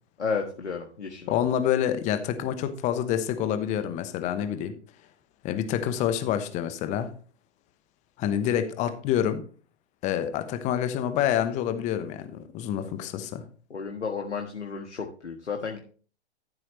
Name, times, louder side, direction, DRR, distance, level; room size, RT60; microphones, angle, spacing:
voice 1, 0.2-1.4 12.8-12.9 13.7-15.8, left 5 dB, 75° left, 2 dB, 1.7 m, -32 dB
voice 2, 1.3-4.7 5.4-7.1 8.2-9.4 10.0-13.4, left 10 dB, 20° left, 9 dB, 1.0 m, -27 dB
13.5 x 7.6 x 3.2 m, 0.41 s
figure-of-eight pair, 115°, 35 cm